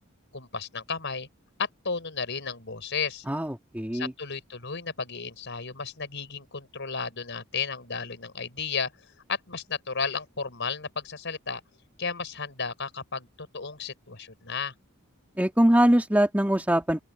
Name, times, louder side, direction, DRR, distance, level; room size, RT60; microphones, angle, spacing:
voice 1, 0.3-1.3 1.6-3.2 3.9-8.9 9.3-11.6 12.0-14.7, left 5 dB, 60° left, 5.0 m, -33 dB
voice 2, 3.3-4.1 15.4-17.0, right 1 dB, 10° right, 2.2 m, -22 dB
open air
head